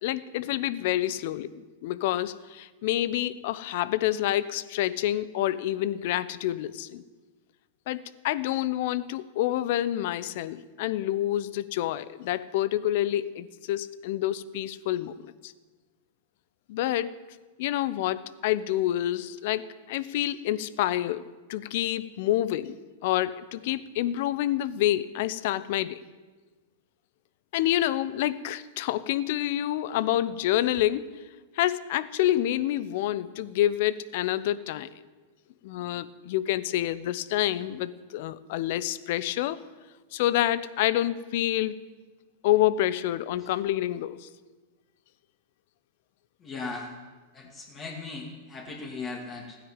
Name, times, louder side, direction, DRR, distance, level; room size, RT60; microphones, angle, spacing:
voice 1, 0.0-7.0 7.9-15.5 16.7-17.2 17.6-22.7 23.0-26.0 27.5-31.1 31.5-35.0 35.6-39.6 40.1-41.8 42.4-44.3, left 13 dB, 60° left, 16 dB, 0.8 m, -28 dB
voice 2, 46.4-46.9 47.3-49.6, left 3 dB, 30° left, -1 dB, 2.6 m, -38 dB
16.0 x 10.0 x 9.0 m, 1.3 s
hypercardioid pair, 105°, 0 cm